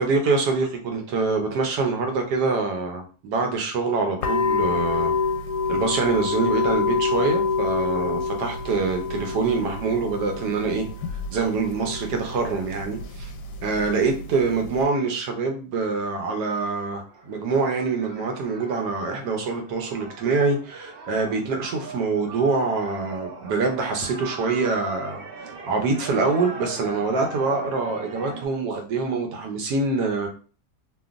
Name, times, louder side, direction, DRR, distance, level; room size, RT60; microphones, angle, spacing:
voice 1, 0.0-5.1 5.7-10.9 11.3-13.3 13.6-30.3, right 4 dB, 90° right, 3 dB, 1.3 m, -25 dB
sound 1, 4.2-14.8, left 4 dB, 85° left, 1.2 m, -27 dB
sound 2, 17.1-28.5, right 3 dB, 70° right, 0.5 m, -39 dB
2.9 x 2.5 x 2.4 m, 0.38 s
omnidirectional pair, 1.7 m